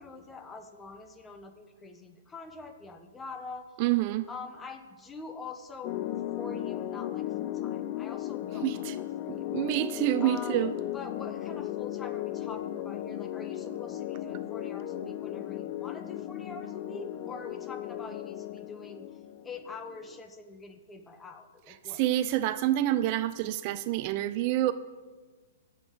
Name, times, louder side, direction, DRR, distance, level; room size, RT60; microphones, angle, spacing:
voice 1, 0.0-3.7 4.3-6.0 6.3-9.6 10.2-19.1 19.4-22.0, left 3 dB, 10° left, 6 dB, 1.0 m, -45 dB
voice 2, 3.8-4.3 8.6-8.9 9.3-10.7 21.8-24.7, right 14 dB, 40° right, 13 dB, 0.4 m, -27 dB
sound 1, 5.8-20.2, left 13 dB, 40° left, 0.5 m, -36 dB
21.5 x 7.8 x 3.8 m, 1.4 s
hypercardioid pair, 135°, 0 cm